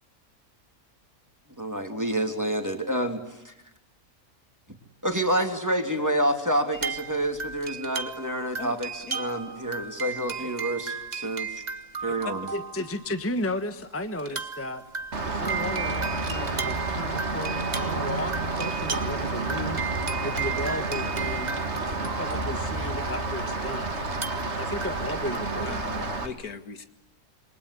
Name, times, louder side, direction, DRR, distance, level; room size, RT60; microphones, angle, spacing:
voice 1, 1.6-3.5 5.0-11.6 12.0-12.5, right 1 dB, 10° right, 5 dB, 2.9 m, -28 dB
sound 1, 6.7-13.1 13.6-13.7 14.2-23.3 24.1-25.4, right 5 dB, 30° right, 1.4 m, -35 dB
voice 2, 12.5-14.8 15.2-19.8 20.2-21.5 21.8-23.9 24.3-26.0, left 1 dB, 10° left, 9 dB, 1.2 m, -34 dB
Rain, 15.1-26.3, right 3 dB, 50° right, 2.6 m, -30 dB
voice 3, 25.6-26.8, left 5 dB, 85° left, 9 dB, 2.3 m, -39 dB
27.5 x 24.5 x 8.5 m, 0.91 s
omnidirectional pair, 1.5 m